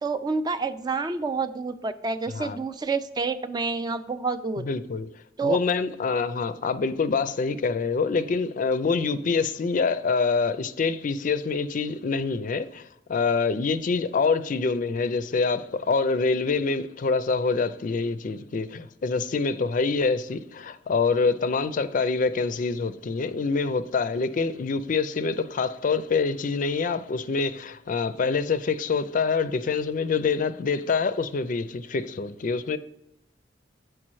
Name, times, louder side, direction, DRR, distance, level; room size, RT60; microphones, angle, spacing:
voice 1, 0.0-4.6 5.4-5.6, right 4 dB, 25° right, 0.3 m, -28 dB
voice 2, 4.6-5.1 5.4-32.8, left 4 dB, 45° left, 0.4 m, -26 dB
7.3 x 4.6 x 3.1 m
head